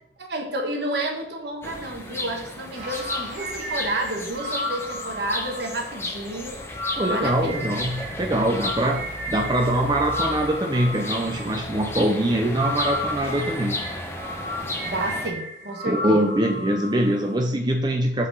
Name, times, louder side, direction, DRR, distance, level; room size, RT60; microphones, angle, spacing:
voice 1, 0.2-6.6 7.1-7.8 14.8-16.3, right 1 dB, 60° right, 2 dB, 1.2 m, -30 dB
sound 1, 1.6-15.3, left 1 dB, 15° left, 0.7 m, -34 dB
sound 2, 2.7-12.0 12.3-17.4, left 1 dB, 40° right, 1.5 m, -34 dB
voice 2, 7.0-13.8 15.9-18.3, right 1 dB, 25° right, 2 dB, 0.5 m, -23 dB
5.7 x 4.0 x 5.5 m, 0.81 s
head